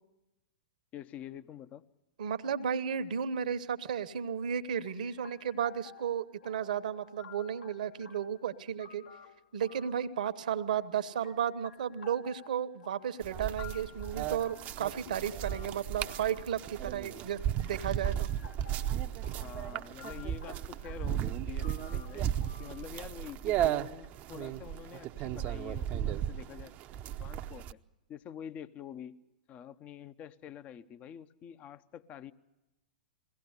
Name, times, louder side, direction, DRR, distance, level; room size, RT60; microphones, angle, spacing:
voice 1, 0.9-1.9 19.4-22.3 22.6-26.7 27.2-27.8 28.1-29.1 29.5-32.3, left 9 dB, 30° left, 13 dB, 0.8 m, -47 dB
voice 2, 2.2-9.0 9.5-18.3, right 8 dB, 65° right, 12 dB, 1.1 m, -34 dB
sound 1, 4.9-24.1, left 7 dB, 75° left, 2.2 m, -55 dB
sound 2, 13.2-27.7, right 11 dB, 35° right, 0.7 m, -35 dB
21.5 x 17.0 x 8.1 m, 0.98 s
figure-of-eight pair, 105°, 5 cm